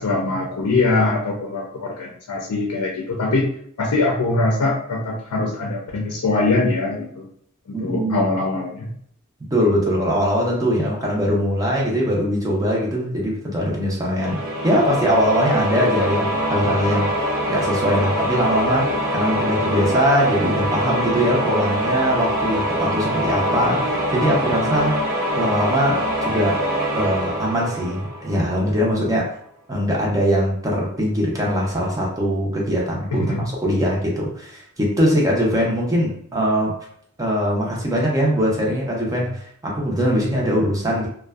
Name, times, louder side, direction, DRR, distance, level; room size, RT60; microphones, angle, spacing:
voice 1, 0.0-3.5 3.8-7.3 7.7-8.9 33.1-33.5, left 2 dB, 80° left, -1 dB, 0.5 m, -22 dB
voice 2, 7.7-8.3 9.5-14.4 14.6-17.1 17.5-25.0 25.4-26.6 26.9-29.3 29.7-36.7 37.2-41.1, equal, 15° right, -3 dB, 0.5 m, -21 dB
sound 1, 14.2-28.8, equal, 50° right, 0.7 m, -24 dB
2.5 x 2.2 x 2.3 m, 0.66 s
head